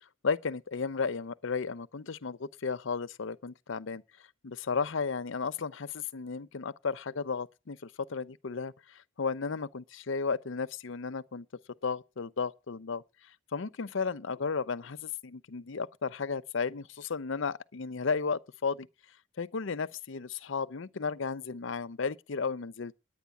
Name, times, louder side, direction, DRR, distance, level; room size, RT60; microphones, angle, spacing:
voice 1, 0.2-4.0 4.4-11.5 11.8-13.0 13.5-18.9 19.4-23.0, left 5 dB, 70° left, 0.6 m, -34 dB
10.5 x 9.3 x 8.3 m
head